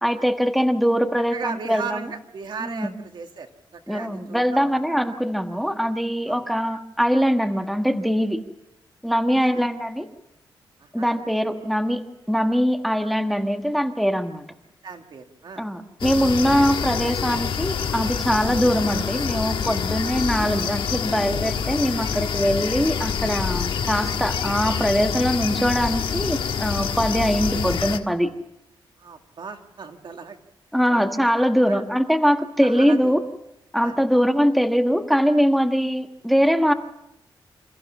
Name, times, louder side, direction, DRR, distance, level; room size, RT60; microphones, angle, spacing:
voice 1, 0.0-2.0 2.6-2.9 3.9-8.4 9.0-10.1 10.9-12.0 12.3-14.4 15.6-28.3 30.7-33.2 33.7-36.7, equal, ahead, 6 dB, 1.4 m, -22 dB
voice 2, 1.3-4.7 6.3-6.4 9.3-9.6 10.8-11.2 14.8-15.7 29.0-30.4 30.9-31.1 31.7-31.8 32.6-33.2 33.8-34.1, right 5 dB, 60° right, 5 dB, 2.1 m, -37 dB
sound 1, 16.0-28.0, left 7 dB, 75° left, 1.5 m, -26 dB
27.5 x 15.0 x 7.2 m, 0.85 s
wide cardioid pair, 110°, 9 cm